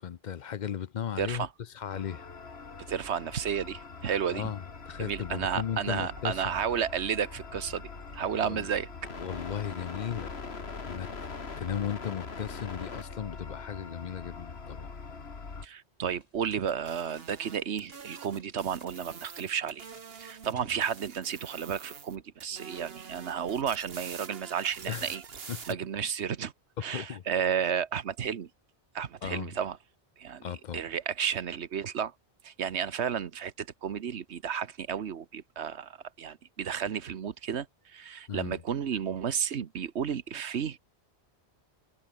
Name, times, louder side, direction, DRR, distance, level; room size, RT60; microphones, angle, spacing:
voice 1, 0.0-2.3 4.3-6.5 8.4-8.7 9.2-10.3 10.8-14.9 24.9-25.2 25.5-25.6 26.8-27.2 29.2-29.5 30.4-30.8 38.3-38.6, left 8 dB, 50° left, 0.6 m, -36 dB
voice 2, 1.2-1.5 2.9-4.5 5.0-7.8 8.1-8.9 15.6-19.9 20.2-25.2 25.7-26.5 26.8-28.5 28.9-29.8 30.2-32.1 32.4-37.7 37.9-40.8, right 8 dB, 80° right, 1.3 m, -32 dB
sound 1, 1.9-15.7, left 4 dB, 70° left, 2.2 m, -42 dB
sound 2, 16.1-21.5, left 1 dB, 35° left, 7.4 m, -61 dB
sound 3, 16.7-20.5 20.8-22.2 22.4-25.7, right 6 dB, 65° right, 1.5 m, -46 dB
omnidirectional pair, 1.1 m